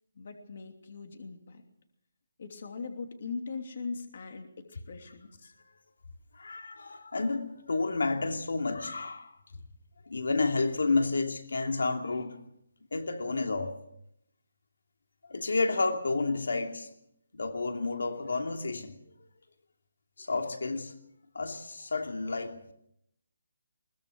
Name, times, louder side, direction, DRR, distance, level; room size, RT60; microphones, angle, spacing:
voice 1, 0.1-1.6 2.4-5.5, left 4 dB, 45° left, 5 dB, 2.9 m, -40 dB
voice 2, 6.3-9.4 10.1-12.4 12.9-13.8 15.3-16.9 17.3-18.9 20.2-21.0 21.3-22.6, left 3 dB, 80° left, 5 dB, 2.8 m, -30 dB
22.0 x 19.5 x 6.4 m, 0.75 s
hypercardioid pair, 175°, 0 cm